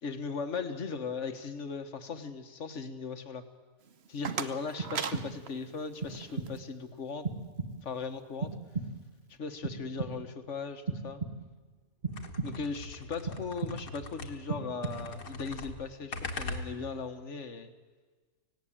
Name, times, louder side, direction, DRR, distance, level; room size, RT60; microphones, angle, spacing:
voice 1, 0.0-3.4 4.1-7.3 7.8-8.5 9.3-11.2 12.4-17.7, left 5 dB, 55° left, 8 dB, 1.7 m, -38 dB
sound 1, 3.8-6.6, right 6 dB, 50° right, 1.1 m, -39 dB
sound 2, 4.8-5.6 6.0-6.7 7.2-8.0 8.4-9.2 9.6-10.4 10.9-11.7 12.0-12.8 13.3-14.1 14.5-15.3, right 4 dB, 35° right, 1.6 m, -38 dB
sound 3, 12.1-14.6 14.8-17.1, left 3 dB, 75° left, 2.1 m, -41 dB
18.5 x 17.5 x 8.9 m, 1.4 s
omnidirectional pair, 1.5 m